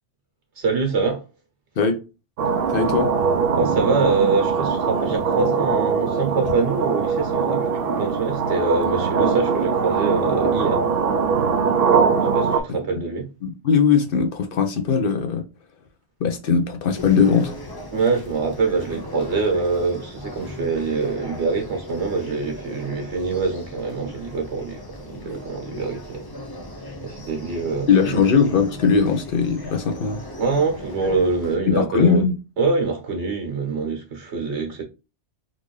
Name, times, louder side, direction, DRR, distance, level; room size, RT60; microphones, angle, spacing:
voice 1, 0.6-1.2 3.5-10.8 12.3-13.3 17.9-26.3 27.0-28.3 30.4-32.3 32.6-34.8, right 4 dB, 85° right, 1.5 m, -24 dB
sound 1, 2.4-12.6, right 5 dB, 65° right, 0.7 m, -21 dB
voice 2, 2.7-3.1 12.7-12.8 13.4-15.5 16.2-17.5 27.9-30.2 31.7-32.4, left 6 dB, 60° left, 0.8 m, -19 dB
sound 2, 16.9-31.6, left 1 dB, 30° left, 0.5 m, -38 dB
3.8 x 2.6 x 3.1 m
omnidirectional pair, 1.1 m